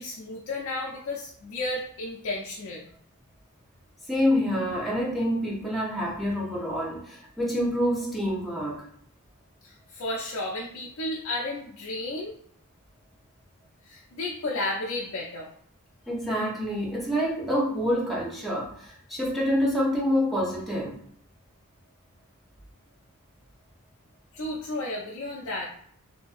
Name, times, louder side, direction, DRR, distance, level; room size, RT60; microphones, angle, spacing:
voice 1, 0.0-2.8 9.6-12.4 13.8-15.5 24.3-25.7, left 2 dB, 70° left, -2 dB, 0.4 m, -33 dB
voice 2, 4.1-8.8 16.1-21.0, equal, ahead, -5 dB, 0.6 m, -27 dB
2.6 x 2.4 x 2.4 m, 0.64 s
head